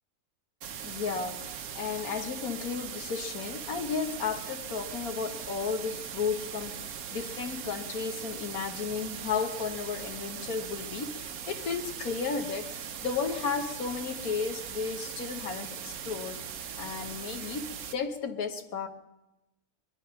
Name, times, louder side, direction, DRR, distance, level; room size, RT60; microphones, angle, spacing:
sound 1, 0.6-18.0, right 8 dB, 75° right, 1.3 m, -40 dB
voice 1, 0.8-16.5 16.8-18.9, left 5 dB, 75° left, 6 dB, 1.5 m, -34 dB
22.0 x 11.0 x 5.7 m, 0.99 s
omnidirectional pair, 1.5 m